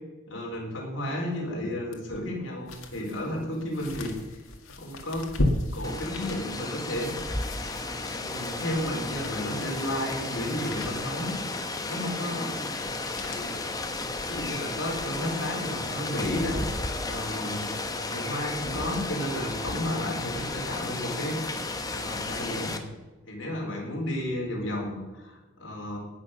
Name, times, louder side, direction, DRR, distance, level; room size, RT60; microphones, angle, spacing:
voice 1, 0.3-4.4 4.7-5.3 5.7-7.4 8.2-11.3 11.8-12.5 13.2-13.5 14.3-16.6 17.0-17.7 18.1-21.4 21.9-22.8 23.3-26.0, left 1 dB, 60° left, -2 dB, 4.3 m, -32 dB
sound 1, 1.9-14.6 15.1-15.2, left 1 dB, 85° left, 1.9 m, -36 dB
Rain, 5.8-22.8, left 2 dB, 15° left, 1.0 m, -33 dB
18.0 x 6.3 x 6.6 m, 1.2 s
head